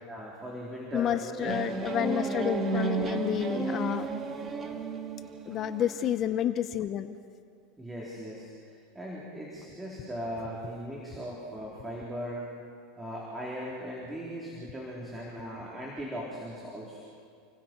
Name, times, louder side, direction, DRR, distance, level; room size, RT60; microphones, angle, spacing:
voice 1, 0.1-2.0 5.8-5.9 7.8-8.5 8.9-12.4 13.0-17.0, equal, 10° right, -5 dB, 3.8 m, -39 dB
voice 2, 0.9-4.1 5.5-7.2, left 10 dB, 35° left, 11 dB, 0.7 m, -30 dB
sound 1, 1.5-6.1, right 4 dB, 25° right, 1.9 m, -32 dB
29.5 x 20.5 x 4.6 m, 2.2 s
supercardioid pair, 130°, 0 cm